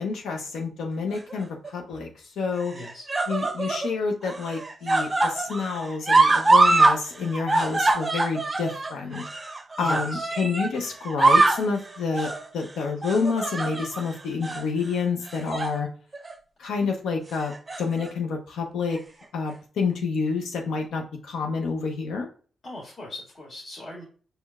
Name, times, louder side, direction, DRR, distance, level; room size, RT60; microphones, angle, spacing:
voice 1, 0.0-2.1 2.4-2.7 3.3-9.2 9.8-15.9 16.6-19.0 19.3-22.3, left 4 dB, 80° left, 2 dB, 0.6 m, -28 dB
sound 1, 1.1-1.7 2.6-3.9 4.2-7.0 7.2-10.7 11.0-11.7 12.1-12.4 13.0-14.0 14.4-14.6 15.3-15.8 16.1-16.3 17.4-18.1 19.0-19.1, right 3 dB, 30° right, 0.5 m, -23 dB
voice 2, 2.7-3.1 9.8-10.3 22.6-24.0, left 1 dB, 55° left, -4 dB, 2.0 m, -39 dB
4.4 x 3.3 x 2.3 m, 0.40 s
supercardioid pair, 55°, 0 cm